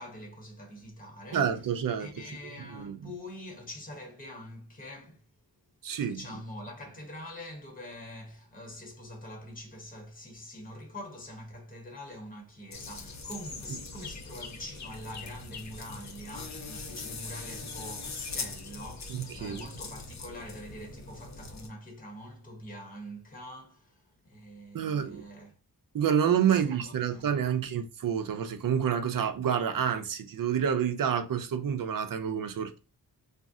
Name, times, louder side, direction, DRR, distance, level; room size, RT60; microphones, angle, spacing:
voice 1, 0.0-1.5 2.0-5.2 6.1-25.5 26.4-27.4, left 1 dB, 20° left, 0.9 m, -44 dB
voice 2, 1.3-2.1 2.7-3.1 5.8-6.2 19.1-19.6 24.7-25.2 25.9-32.8, right 8 dB, 60° right, 0.5 m, -28 dB
sound 1, 12.7-21.7, left 4 dB, 45° left, 0.6 m, -41 dB
2.6 x 2.1 x 3.5 m
wide cardioid pair, 90°, 38 cm